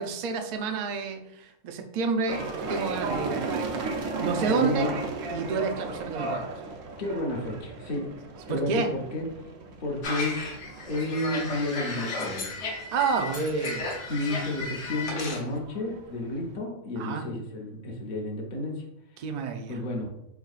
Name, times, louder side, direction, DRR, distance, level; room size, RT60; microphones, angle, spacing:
voice 1, 0.0-2.4 2.7-3.8 4.1-4.9 5.3-6.6 8.5-8.9 12.9-14.0 17.0-17.2 19.2-19.7, right 5 dB, 65° right, 4 dB, 0.4 m, -29 dB
sound 1, 2.3-16.6, right 3 dB, 85° right, 1.0 m, -36 dB
voice 2, 4.4-4.9 7.0-8.1 8.5-9.3 9.8-10.4 10.9-12.7 14.1-18.8 19.1-19.2 19.7-20.1, left 1 dB, 45° left, -1 dB, 0.8 m, -31 dB
sound 2, 10.0-15.4, left 3 dB, 65° left, 1.0 m, -34 dB
4.5 x 3.5 x 2.4 m, 0.81 s
omnidirectional pair, 1.3 m